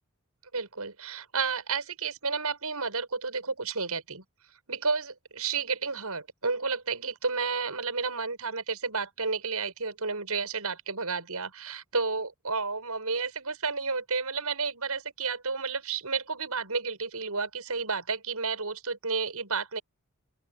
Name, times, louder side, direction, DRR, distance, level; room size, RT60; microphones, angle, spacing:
voice 1, 0.5-4.2 4.7-19.8, right 4 dB, 85° right, 6.7 m, -31 dB
open air
head